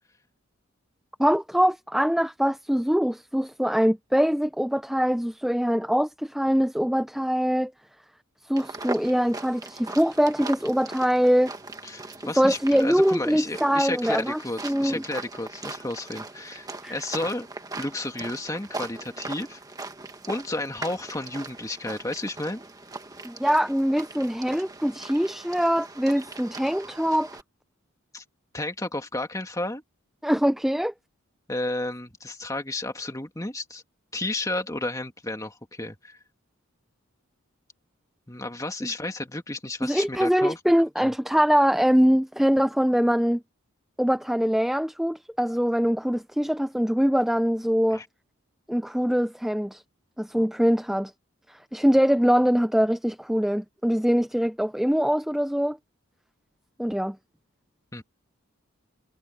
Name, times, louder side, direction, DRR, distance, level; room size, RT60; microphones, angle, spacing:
voice 1, 1.2-7.7 8.5-11.5 12.2-15.0 16.8-17.0 23.2-27.3 30.2-30.9 39.8-43.4 44.0-48.0 48.7-49.8 50.2-51.1 51.5-55.8 56.8-57.2, equal, ahead, 0.4 m, -23 dB
sound 1, 8.6-27.4, right 2 dB, 15° right, 1.6 m, -40 dB
voice 2, 11.8-17.5 17.8-19.6 20.3-22.6 28.1-28.2 28.5-29.8 31.5-33.8 34.1-36.2 38.3-40.6 41.0-41.1 47.9-48.1 57.9-58.0, left 2 dB, 15° left, 2.0 m, -32 dB
head